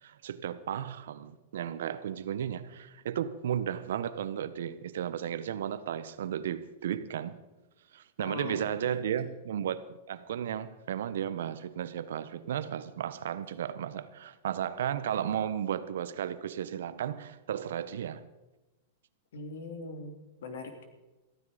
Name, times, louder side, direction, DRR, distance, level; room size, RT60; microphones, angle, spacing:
voice 1, 0.0-7.4 7.9-18.3, right 9 dB, 80° right, 0.9 m, -34 dB
voice 2, 8.2-9.3 19.3-20.1 20.4-20.8, left 3 dB, 80° left, 2.9 m, -41 dB
15.0 x 14.0 x 5.0 m
supercardioid pair, 145°, 0 cm